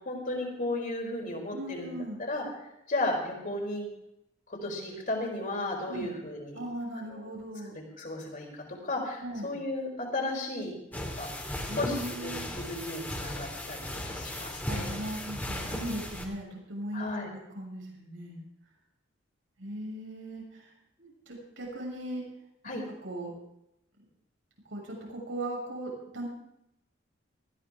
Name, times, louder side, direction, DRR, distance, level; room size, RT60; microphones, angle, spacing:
voice 1, 0.0-1.9 2.3-2.4 2.9-3.9 4.6-6.6 7.1-7.2 8.0-11.3 11.8-12.0 12.2-14.9 16.9-17.3 22.6-22.8, left 2 dB, 45° left, 0 dB, 4.6 m, -34 dB
voice 2, 1.5-2.2 5.8-6.1 6.5-7.8 9.2-9.5 11.7-12.5 14.7-17.1 17.3-18.4 19.6-20.7 21.0-22.2 22.7-23.3 24.7-26.3, right 1 dB, 80° right, -2 dB, 6.5 m, -38 dB
Footsteps in ball gown, 10.9-16.3, left 1 dB, 10° left, 2.8 m, -36 dB
19.5 x 15.0 x 3.7 m, 0.83 s
head